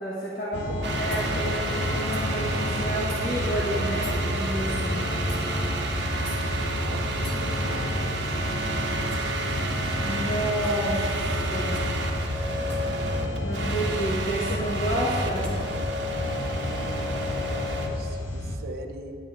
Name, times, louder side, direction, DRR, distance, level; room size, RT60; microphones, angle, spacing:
voice 1, 0.0-5.0 10.0-11.0 11.5-11.8 13.4-15.5, right 1 dB, 50° left, -6 dB, 1.3 m, -30 dB
sound 1, 0.5-18.6, left 1 dB, 80° left, 0.9 m, -30 dB
sound 2, 0.8-17.9, right 2 dB, 90° right, 1.0 m, -32 dB
sound 3, 1.1-1.3 2.1-2.3 3.1-3.2 4.0-4.2 5.3-5.4 6.3-6.4 7.2-7.4 9.1-9.4 10.6-10.9 11.7-12.0 12.7-12.9 14.5-14.6 15.4-15.6, right 1 dB, 5° left, 1.1 m, -42 dB
voice 2, 6.8-8.3 16.3-19.2, right 2 dB, 55° right, 3 dB, 0.6 m, -42 dB
9.6 x 9.0 x 3.6 m, 2.6 s
head